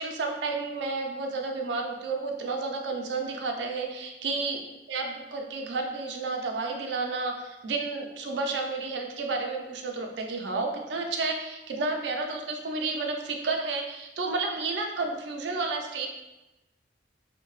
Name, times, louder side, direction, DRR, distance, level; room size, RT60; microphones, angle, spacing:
voice 1, 0.0-4.6 4.9-16.1, right 3 dB, 75° right, 3 dB, 0.4 m, -31 dB
2.6 x 2.1 x 3.0 m, 1.0 s
head